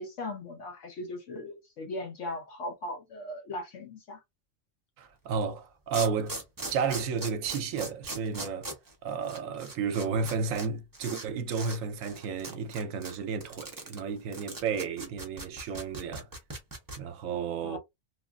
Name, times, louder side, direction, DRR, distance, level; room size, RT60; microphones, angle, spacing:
voice 1, 0.0-4.2 17.6-17.8, left 2 dB, 65° left, 1.1 m, -38 dB
voice 2, 5.0-6.4 6.7-8.7 9.0-16.3 17.0-17.8, right 5 dB, 80° right, 1.0 m, -32 dB
sound 1, 5.4-5.5 5.9-10.7 10.9-11.2 11.5-11.8 12.0-17.0, right 2 dB, 20° right, 0.6 m, -39 dB
3.0 x 2.4 x 2.3 m
omnidirectional pair, 1.4 m